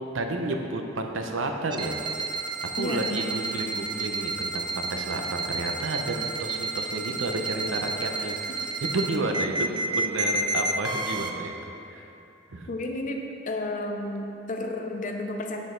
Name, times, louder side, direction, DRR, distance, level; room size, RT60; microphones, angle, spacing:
voice 1, 0.1-2.2 2.7-11.5 11.9-12.1 12.5-12.7, right 2 dB, 80° right, 3 dB, 0.7 m, -31 dB
sound 1, 1.7-11.3, right 2 dB, 25° right, 0.4 m, -30 dB
voice 2, 2.8-3.3 12.7-13.2 13.5-15.6, left 2 dB, 40° left, 2 dB, 0.6 m, -31 dB
7.2 x 6.2 x 3.8 m, 2.8 s
head